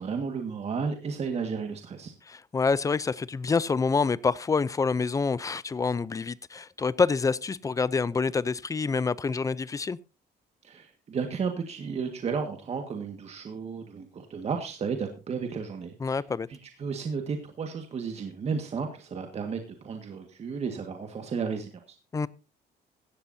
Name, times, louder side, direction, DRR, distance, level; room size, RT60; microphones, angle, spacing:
voice 1, 0.0-2.1 10.6-16.2 16.5-22.0, right 5 dB, 35° right, 1.8 m, -33 dB
voice 2, 2.3-10.0 16.0-16.5 22.1-22.3, left 4 dB, 20° left, 0.5 m, -27 dB
16.5 x 14.0 x 2.7 m
cardioid pair, 150°, 17 cm